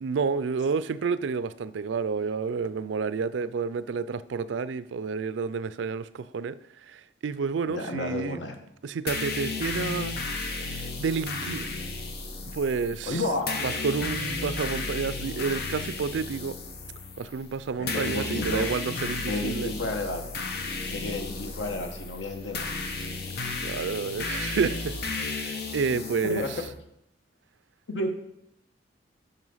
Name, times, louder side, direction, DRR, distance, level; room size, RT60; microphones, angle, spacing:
voice 1, 0.0-6.6 6.9-8.4 8.8-10.2 10.4-11.8 12.5-13.2 13.6-16.6 17.2-19.7 23.6-26.4, right 5 dB, 90° right, 16 dB, 0.4 m, -30 dB
voice 2, 7.7-8.6 13.0-13.6 17.8-18.7 19.0-20.2 20.9-22.7 26.2-26.5 27.9-28.1, left 2 dB, 80° left, 5 dB, 1.2 m, -31 dB
sound 1, 9.1-26.7, left 3 dB, 60° left, 1.0 m, -33 dB
8.0 x 5.5 x 5.5 m, 0.80 s
head